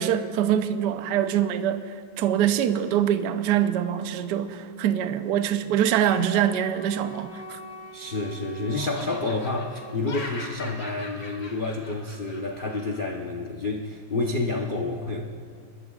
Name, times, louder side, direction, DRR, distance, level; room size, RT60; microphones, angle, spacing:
voice 1, 0.0-1.8 2.2-7.6, right 10 dB, 70° right, 9 dB, 1.1 m, -24 dB
Wind instrument woodwind instrument, 6.0-10.0, left 2 dB, 65° left, 1.7 m, -42 dB
Laughter, 7.5-8.4 8.7-13.1, left 2 dB, 45° left, 2.3 m, -41 dB
voice 2, 7.9-15.2, left 2 dB, 85° left, 1 dB, 0.4 m, -29 dB
25.0 x 20.5 x 2.4 m, 2.1 s
omnidirectional pair, 2.4 m